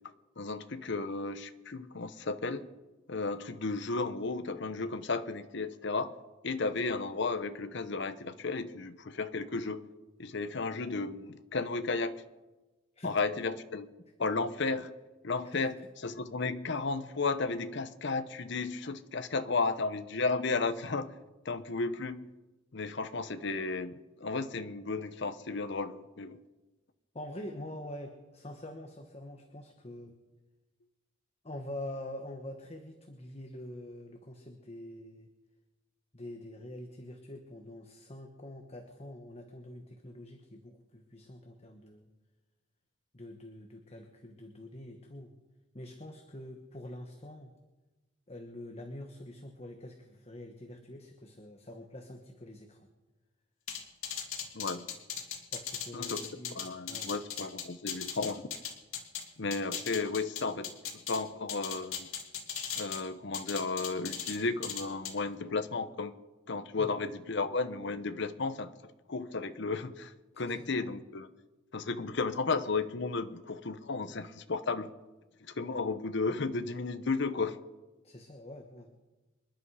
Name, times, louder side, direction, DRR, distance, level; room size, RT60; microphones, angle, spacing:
voice 1, 0.4-2.7 3.1-6.1 6.4-9.8 10.2-12.2 13.0-13.9 14.2-14.9 15.2-21.1 21.4-22.3 22.7-26.4 54.5-54.9 55.9-56.2 56.5-58.5 59.4-60.7 61.1-62.1 62.8-66.1 66.5-68.7 69.1-71.3 71.7-74.9 75.4-77.6, left 3 dB, 60° left, 11 dB, 0.9 m, -33 dB
voice 2, 27.1-30.2 31.4-35.3 36.1-42.1 43.1-45.3 45.7-47.5 48.3-52.9 55.5-57.2 66.8-66.9 70.3-70.9 75.7-75.8 78.0-79.0, left 1 dB, 30° left, 4 dB, 1.3 m, -45 dB
sound 1, 53.7-59.2 59.5-61.2 61.5-63.0 63.3-64.4 64.6-65.1, left 8 dB, 85° left, 2.6 m, -37 dB
27.0 x 11.0 x 4.9 m, 1.1 s
head